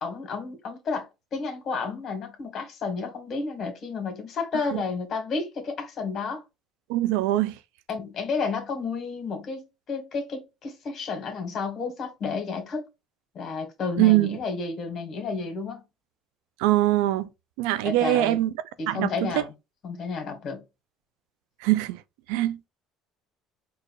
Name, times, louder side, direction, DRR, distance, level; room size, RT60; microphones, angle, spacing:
voice 1, 0.0-6.4 7.9-12.9 13.3-15.8 17.8-18.4 18.8-19.5 19.8-20.6, left 4 dB, 50° left, 1.7 m, -31 dB
voice 2, 6.9-7.5 14.0-14.4 16.6-17.3 17.6-18.5 18.9-19.4 21.6-22.0 22.3-22.6, right 16 dB, 90° right, 0.4 m, -22 dB
4.6 x 2.5 x 4.6 m
supercardioid pair, 100°, 0 cm